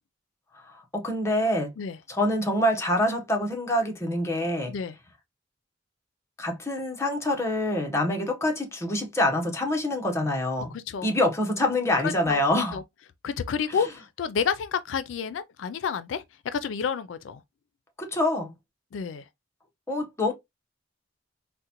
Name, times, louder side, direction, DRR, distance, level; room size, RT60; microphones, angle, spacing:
voice 1, 0.9-1.7 2.1-4.7 6.4-10.7 11.0-12.8 18.0-18.5 19.9-20.3, left 1 dB, 15° left, 0.7 m, -25 dB
voice 2, 10.7-11.1 12.0-12.4 12.7-12.8 13.2-17.4 18.9-19.2, left 6 dB, 85° left, 0.4 m, -30 dB
3.7 x 2.1 x 2.8 m
head